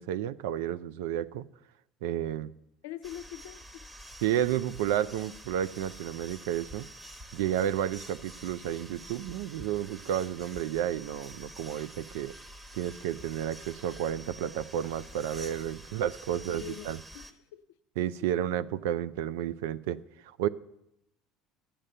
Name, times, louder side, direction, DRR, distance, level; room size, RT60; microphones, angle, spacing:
voice 1, 0.0-1.4 2.0-2.5 4.2-6.9 7.3-12.3 12.7-17.0 18.0-20.5, right 11 dB, 80° right, 0.5 m, -31 dB
voice 2, 2.8-3.9 16.3-17.6, left 13 dB, 80° left, 0.6 m, -44 dB
sound 1, 3.0-17.3, right 1 dB, 20° right, 1.3 m, -48 dB
11.0 x 8.8 x 6.6 m
supercardioid pair, 80°, 0 cm